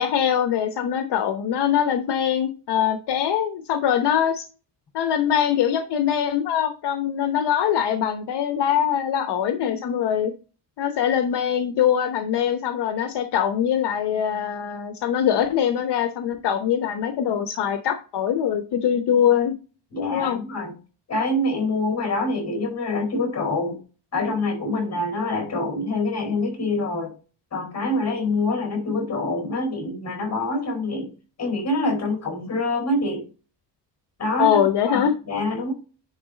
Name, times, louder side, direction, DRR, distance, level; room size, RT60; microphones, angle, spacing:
voice 1, 0.0-4.5 4.9-10.3 10.8-19.5 20.1-20.4 34.4-35.1, left 9 dB, 65° left, 8 dB, 0.9 m, -23 dB
voice 2, 19.9-20.7 21.1-23.8 24.1-27.1 27.5-31.1 31.4-33.2 34.2-34.6 34.9-35.7, left 2 dB, 35° left, 4 dB, 4.4 m, -25 dB
10.5 x 4.0 x 4.0 m, 0.34 s
cardioid pair, 170°, 43 cm